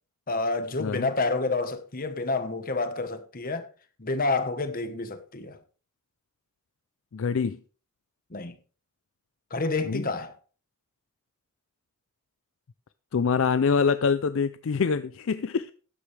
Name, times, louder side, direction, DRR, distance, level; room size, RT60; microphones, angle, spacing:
voice 1, 0.3-3.7 4.0-5.6 8.3-8.5 9.5-10.3, left 3 dB, 40° left, 1.2 m, -29 dB
voice 2, 7.1-7.6 9.9-10.0 13.1-15.7, left 5 dB, 60° left, 0.4 m, -25 dB
13.0 x 9.7 x 3.3 m
head